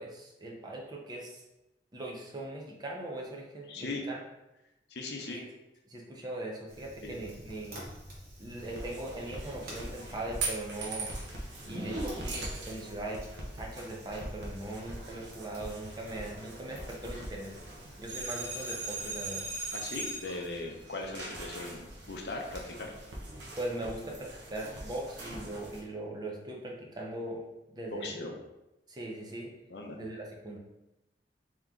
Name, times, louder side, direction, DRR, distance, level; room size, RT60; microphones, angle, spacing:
voice 1, 0.0-1.4 1.9-4.2 5.3-5.5 5.9-7.8 8.4-11.1 11.7-13.2 13.5-17.6 18.0-19.5 23.6-27.4 27.7-28.2 28.9-29.5 29.9-30.6, right 1 dB, 25° right, -1 dB, 0.7 m, -40 dB
voice 2, 3.7-4.0 4.9-5.4 7.0-7.2 19.7-22.9 27.9-28.4 29.7-30.0, left 2 dB, 65° left, 1 dB, 0.6 m, -39 dB
Fire, 6.7-19.3, equal, 55° right, 1.1 m, -51 dB
sound 1, 8.6-25.8, right 2 dB, 80° right, 0.9 m, -41 dB
3.6 x 3.0 x 3.7 m, 0.94 s
head